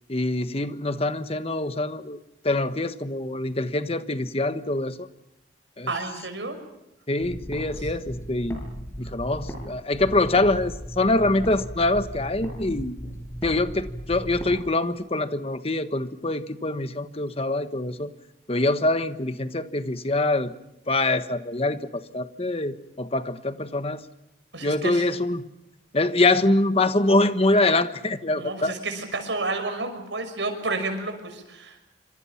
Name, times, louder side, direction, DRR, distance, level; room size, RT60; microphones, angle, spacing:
voice 1, 0.1-2.2 2.4-5.1 5.8-5.9 7.1-8.6 9.0-13.0 13.4-18.1 18.5-20.5 20.9-24.0 24.6-25.5 25.9-28.7, left 2 dB, 35° left, 10 dB, 1.3 m, -24 dB
voice 2, 5.9-6.6 7.6-7.9 24.5-25.1 28.4-31.8, right 3 dB, 90° right, 7 dB, 6.0 m, -31 dB
sound 1, 7.2-9.7 9.9-14.6, equal, 15° left, 6.7 m, -36 dB
28.0 x 26.0 x 5.9 m, 0.89 s
head